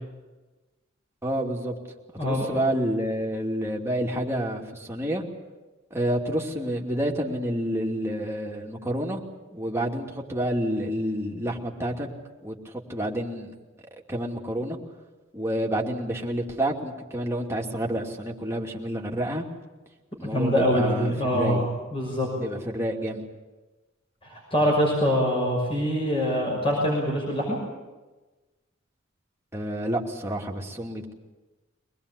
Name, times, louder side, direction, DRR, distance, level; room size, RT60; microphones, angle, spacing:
voice 1, 1.2-1.7 2.2-5.2 5.9-9.2 9.5-12.1 12.4-13.5 14.1-14.8 15.3-19.4 20.2-21.6 22.4-23.2 29.5-31.1, right 1 dB, 15° right, -1 dB, 2.7 m, -29 dB
voice 2, 2.2-2.6 20.2-22.3 24.2-27.6, equal, 25° left, -2 dB, 6.0 m, -24 dB
24.0 x 20.0 x 8.4 m, 1.2 s
head